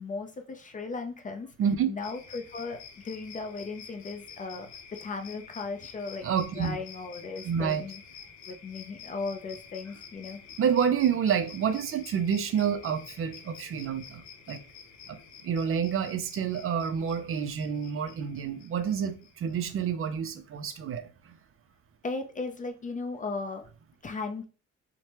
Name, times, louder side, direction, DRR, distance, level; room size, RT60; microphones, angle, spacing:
voice 1, 0.0-1.5 1.9-4.7 5.0-6.2 6.5-8.0 8.5-10.4 22.0-23.7 24.0-24.4, left 3 dB, 25° left, 0.4 m, -36 dB
voice 2, 1.6-1.9 6.2-6.8 7.4-7.8 10.6-14.6 15.1-15.2 15.4-21.1, right 7 dB, 45° right, 0.4 m, -28 dB
sound 1, 2.0-20.0, left 7 dB, 70° left, 0.6 m, -49 dB
3.1 x 2.1 x 2.8 m
cardioid pair, 90°, 30 cm